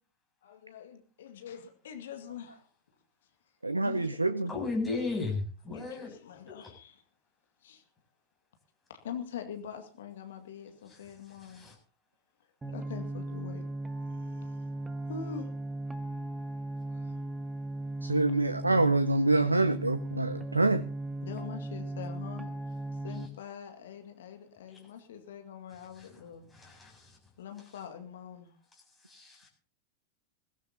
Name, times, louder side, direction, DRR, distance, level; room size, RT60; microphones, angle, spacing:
voice 1, 0.4-2.7 3.8-4.5 5.7-7.0 7.6-7.8 8.9-11.7 12.7-13.7 14.1-14.6 15.1-15.5 16.9-17.2 21.2-22.5 23.0-26.5 27.4-28.5, left 7 dB, 60° left, 6 dB, 2.0 m, -44 dB
voice 2, 3.6-4.5 18.0-20.8, right 2 dB, 85° right, 14 dB, 0.6 m, -26 dB
voice 3, 4.5-6.1 11.4-11.7 24.7-24.8 26.0-26.1 26.5-27.2 29.0-29.5, left 3 dB, 15° left, -1 dB, 7.8 m, -35 dB
sound 1, 12.6-23.3, right 1 dB, 10° right, 1.3 m, -37 dB
21.0 x 16.5 x 2.9 m, 0.39 s
figure-of-eight pair, 90°, 0 cm